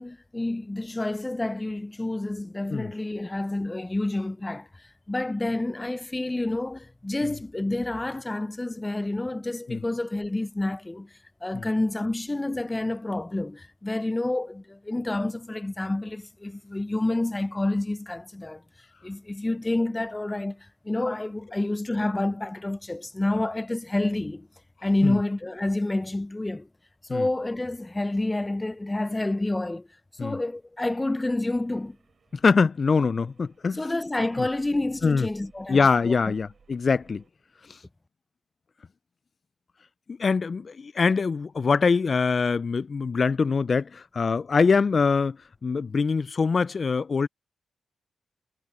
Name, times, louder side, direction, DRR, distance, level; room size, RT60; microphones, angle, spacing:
voice 1, 0.0-11.1 11.4-18.6 19.0-24.5 24.8-26.7 27.1-29.9 30.2-32.0 33.7-36.2, left 2 dB, 20° left, 0.6 m, -29 dB
sound 1, 31.5-37.3, right 5 dB, 60° right, 3.3 m, -60 dB
voice 2, 32.3-33.8 34.4-34.5 35.0-35.3 35.7-37.2 40.1-45.4 45.6-47.3, left 5 dB, 50° left, 0.3 m, -23 dB
cardioid pair, 60°, 0 cm